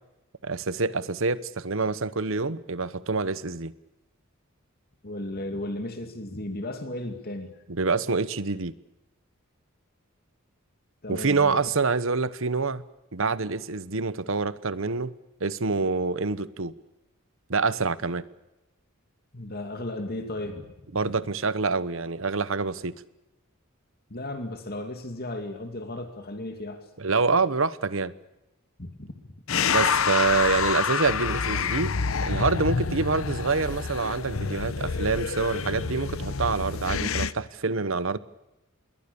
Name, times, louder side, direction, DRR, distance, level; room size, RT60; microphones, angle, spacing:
voice 1, 0.4-3.7 7.7-8.7 11.1-12.8 13.1-15.1 15.4-16.7 17.5-18.2 20.9-22.9 27.0-28.1 29.7-31.9 32.2-38.2, right 4 dB, 65° right, 1.1 m, -26 dB
voice 2, 5.0-7.6 11.0-11.7 19.3-20.7 24.1-26.8 28.8-29.1 29.5-29.6, left 1 dB, 45° left, 2.5 m, -35 dB
sound 1, 29.5-37.3, left 6 dB, 70° left, 0.9 m, -27 dB
28.0 x 22.0 x 7.0 m
head